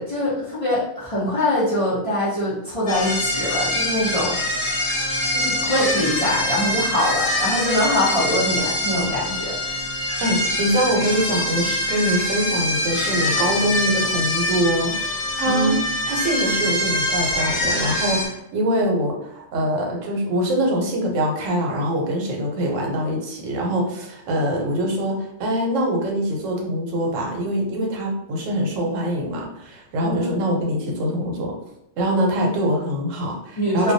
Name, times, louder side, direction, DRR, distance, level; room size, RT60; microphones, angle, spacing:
voice 1, 0.0-4.4 5.3-9.5 15.4-15.8 30.0-30.3 33.6-33.9, left 1 dB, 35° left, -8 dB, 0.5 m, -23 dB
sound 1, 2.9-18.3, left 1 dB, 90° left, 1.1 m, -24 dB
voice 2, 10.2-15.8 16.1-31.5 32.0-33.9, equal, 85° right, 0 dB, 1.0 m, -24 dB
2.2 x 2.2 x 2.6 m, 0.81 s
omnidirectional pair, 1.3 m